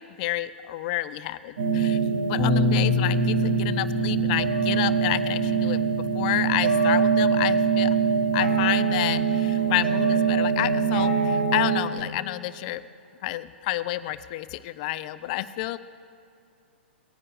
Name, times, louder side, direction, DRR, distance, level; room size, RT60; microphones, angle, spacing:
voice 1, 0.0-2.0 2.3-5.8 6.1-8.0 8.3-12.8 13.2-15.8, left 15 dB, 40° left, 14 dB, 0.4 m, -29 dB
sound 1, 1.6-11.8, right 6 dB, 65° right, 2.8 m, -23 dB
Bass guitar, 2.4-8.6, left 6 dB, 15° left, 1.0 m, -30 dB
19.0 x 9.7 x 2.5 m, 2.5 s
figure-of-eight pair, 110°, 6 cm